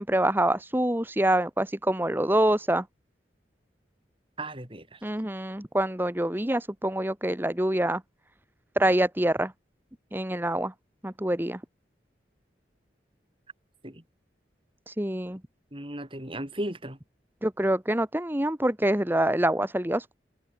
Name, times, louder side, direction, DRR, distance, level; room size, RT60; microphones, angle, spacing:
voice 1, 0.0-2.8 5.0-8.0 8.7-9.5 10.1-10.7 11.0-11.6 14.9-15.4 17.4-20.1, right 1 dB, 10° right, 1.3 m, -26 dB
voice 2, 4.4-5.0 13.8-14.0 15.7-17.0, right 1 dB, 30° right, 6.9 m, -36 dB
open air
head